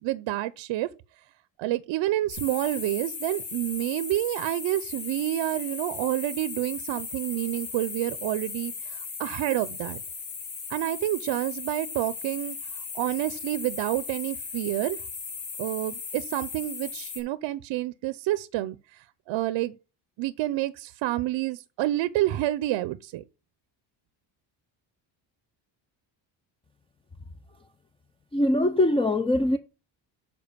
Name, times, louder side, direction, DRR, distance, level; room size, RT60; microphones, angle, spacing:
voice 1, 0.0-0.9 1.6-10.0 10.7-15.0 15.6-19.8 20.2-23.2, right 15 dB, 75° right, 0.7 m, -29 dB
sound 1, 2.3-17.2, left 5 dB, 65° left, 3.4 m, -37 dB
voice 2, 28.3-29.6, left 1 dB, 10° left, 0.5 m, -22 dB
6.9 x 4.8 x 6.7 m
cardioid pair, 120°, 46 cm